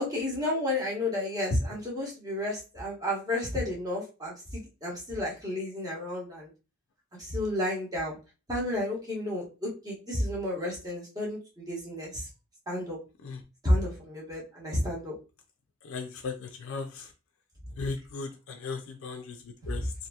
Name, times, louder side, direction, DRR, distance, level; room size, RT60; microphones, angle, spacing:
voice 1, 0.0-6.5 7.2-8.2 8.5-12.3 12.7-13.0 13.6-15.1 19.6-19.9, left 1 dB, 20° right, -4 dB, 1.1 m, -31 dB
voice 2, 15.8-17.1 17.8-19.9, left 4 dB, 75° left, 5 dB, 0.4 m, -37 dB
2.8 x 2.6 x 2.3 m, 0.31 s
head